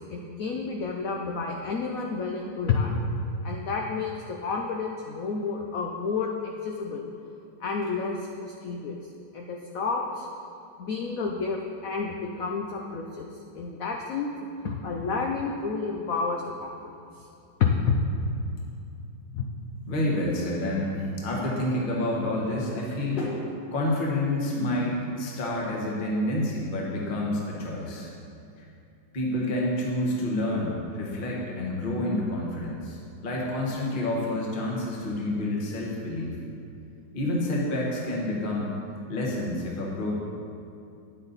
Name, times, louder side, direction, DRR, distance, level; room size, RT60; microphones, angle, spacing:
voice 1, 0.1-3.0 3.4-7.1 7.6-9.0 9.3-10.3 10.8-13.3 13.5-14.3 14.6-16.8 17.6-17.9 19.3-19.4, left 5 dB, 70° left, 0 dB, 0.8 m, -30 dB
voice 2, 19.9-23.4 23.7-28.1 29.1-36.4 37.1-38.7 39.1-40.1, left 1 dB, 30° left, -3 dB, 1.2 m, -28 dB
9.8 x 7.9 x 4.0 m, 2.5 s
omnidirectional pair, 2.2 m